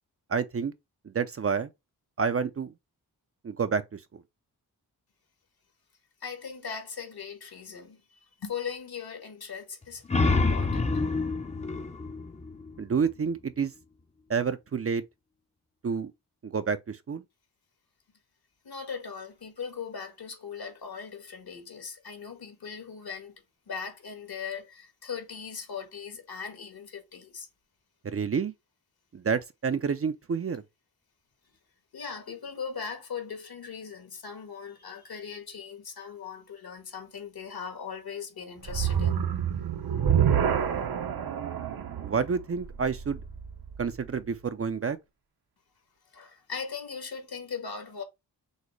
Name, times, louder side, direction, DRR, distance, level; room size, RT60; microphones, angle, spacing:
voice 1, 0.3-0.7 1.0-1.7 2.2-2.7 3.4-4.2 12.8-13.7 14.3-15.0 15.8-16.1 16.4-17.2 28.0-28.5 29.1-30.6 42.0-43.2 43.8-45.0, right 6 dB, 35° right, 0.5 m, -29 dB
voice 2, 6.2-10.0 10.4-10.9 18.6-23.3 23.7-27.5 31.9-39.2 46.0-48.0, left 6 dB, 65° left, 1.5 m, -39 dB
sound 1, 9.8-13.3, left 3 dB, 15° left, 0.6 m, -28 dB
sound 2, 38.6-43.9, right 8 dB, 60° right, 0.8 m, -28 dB
6.4 x 2.1 x 3.2 m
cardioid pair, 60°, 40 cm